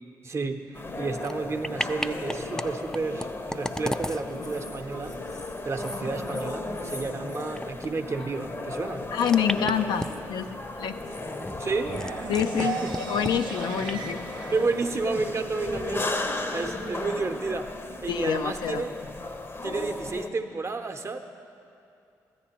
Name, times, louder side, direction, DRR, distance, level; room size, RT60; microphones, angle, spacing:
voice 1, 0.2-5.2 5.6-9.0 11.6-12.0 12.6-13.0 14.5-16.2 16.5-17.7 18.0-18.9 19.6-21.2, right 3 dB, 35° right, 5 dB, 0.7 m, -31 dB
sound 1, 0.7-20.3, left 2 dB, 30° left, 0.7 m, -35 dB
sound 2, 1.2-1.3 1.6-2.7 2.9-7.9 8.2-8.3 9.1-10.4 11.0-12.7 12.9-13.3 13.9-14.0, left 1 dB, 5° left, 0.4 m, -35 dB
voice 2, 9.1-11.0 12.3-14.2 18.1-18.9, left 8 dB, 70° left, 8 dB, 0.4 m, -27 dB
sound 3, 11.8-15.8, right 5 dB, 80° right, 0.6 m, -37 dB
13.5 x 9.3 x 2.9 m, 2.6 s
supercardioid pair, 50°, 8 cm